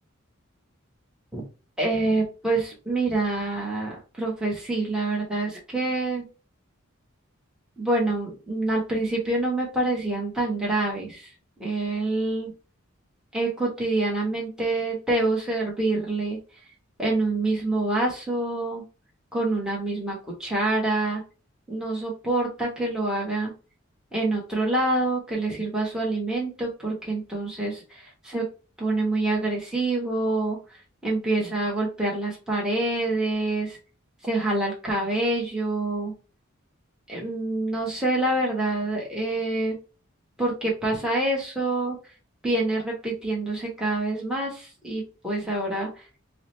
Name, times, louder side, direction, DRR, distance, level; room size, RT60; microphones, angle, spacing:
voice 1, 1.8-6.3 7.8-11.3 11.6-12.5 13.3-16.4 17.0-18.8 19.3-21.2 21.7-23.5 24.1-28.5 28.8-33.8 34.2-36.1 37.1-39.8 40.4-42.0 42.4-45.9, right 2 dB, 5° right, -3 dB, 1.1 m, -26 dB
4.8 x 2.1 x 3.0 m, 0.33 s
head